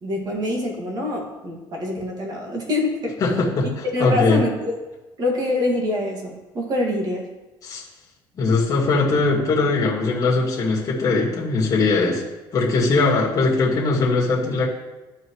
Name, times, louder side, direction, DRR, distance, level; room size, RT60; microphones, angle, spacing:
voice 1, 0.0-3.2 3.9-4.8 5.2-7.3, left 2 dB, 40° right, -1 dB, 1.9 m, -25 dB
voice 2, 3.2-4.4 7.6-7.8 8.3-12.2 12.5-14.7, left 3 dB, 35° left, -5 dB, 2.0 m, -20 dB
12.5 x 4.8 x 3.1 m, 1.1 s
cardioid pair, 135°, 10 cm